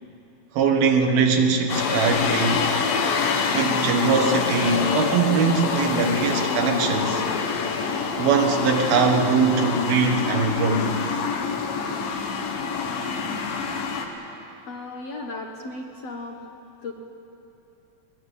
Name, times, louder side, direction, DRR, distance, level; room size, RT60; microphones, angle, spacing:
voice 1, 0.6-2.6 3.5-7.2 8.2-10.9, right 5 dB, 80° right, 3 dB, 3.5 m, -21 dB
sound 1, 1.7-14.1, left 5 dB, 75° left, 3.2 m, -26 dB
voice 2, 14.7-16.4 16.8-16.9, left 2 dB, 55° left, 1 dB, 2.0 m, -35 dB
21.5 x 20.0 x 8.4 m, 2.9 s
omnidirectional pair, 4.2 m